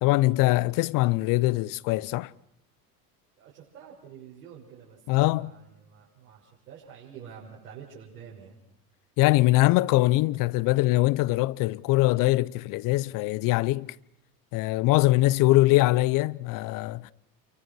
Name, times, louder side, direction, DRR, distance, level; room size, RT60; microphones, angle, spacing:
voice 1, 0.0-2.3 5.1-5.5 9.2-13.9 14.5-17.1, left 19 dB, 45° left, 0.9 m, -22 dB
voice 2, 3.4-8.6 15.0-15.2, right 7 dB, 70° right, 6.7 m, -48 dB
29.5 x 24.0 x 6.4 m
figure-of-eight pair, 75°, 47 cm